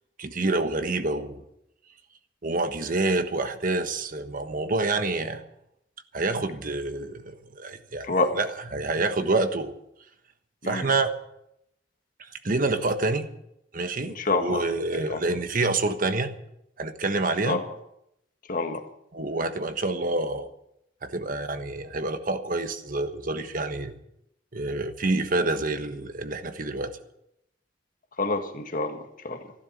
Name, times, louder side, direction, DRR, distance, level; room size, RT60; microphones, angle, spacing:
voice 1, 0.2-1.4 2.4-5.4 6.1-8.1 8.3-8.5 8.7-9.7 10.6-11.1 12.2-13.3 13.7-16.3 16.8-17.6 19.1-20.5 21.0-24.0 24.5-27.0, right 2 dB, 50° right, 8 dB, 1.3 m, -27 dB
voice 2, 14.1-14.7 15.1-15.2 17.4-17.6 18.5-18.8 28.2-29.4, left 2 dB, 50° left, 6 dB, 1.7 m, -27 dB
13.5 x 12.0 x 7.3 m, 0.79 s
head